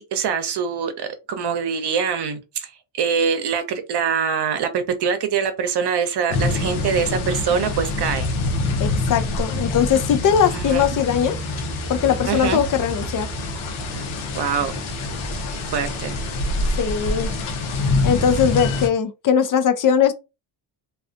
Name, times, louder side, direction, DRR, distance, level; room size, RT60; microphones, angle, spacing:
voice 1, 0.0-8.3 10.5-10.8 12.3-12.6 14.3-14.8 15.7-16.2, right 6 dB, 55° right, 0.7 m, -24 dB
sound 1, 6.3-18.9, left 3 dB, 85° left, 0.8 m, -26 dB
sound 2, 7.3-17.6, right 3 dB, 10° right, 0.8 m, -35 dB
voice 2, 8.8-11.4 11.9-13.3 16.8-17.3 18.0-20.1, left 8 dB, 45° left, 0.4 m, -20 dB
2.3 x 2.3 x 2.5 m
supercardioid pair, 60°, 47 cm